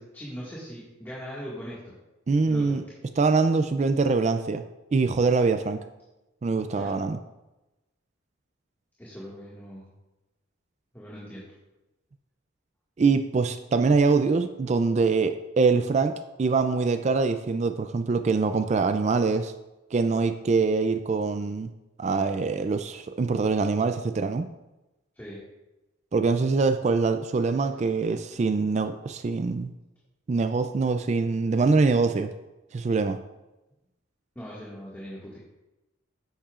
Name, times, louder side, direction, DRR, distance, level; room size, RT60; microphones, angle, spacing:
voice 1, 0.0-2.0 2.4-2.8 6.8-7.0 9.0-9.9 10.9-11.5 25.2-25.4 27.5-27.7 34.4-35.4, equal, 10° left, -8 dB, 1.8 m, -40 dB
voice 2, 2.3-2.8 3.2-4.6 4.9-5.8 6.4-7.2 13.0-16.1 16.4-19.5 19.9-21.7 22.0-24.5 26.1-29.7 30.3-32.3 32.7-33.2, right 4 dB, 35° right, 9 dB, 0.3 m, -24 dB
10.0 x 8.5 x 2.4 m, 1.0 s
head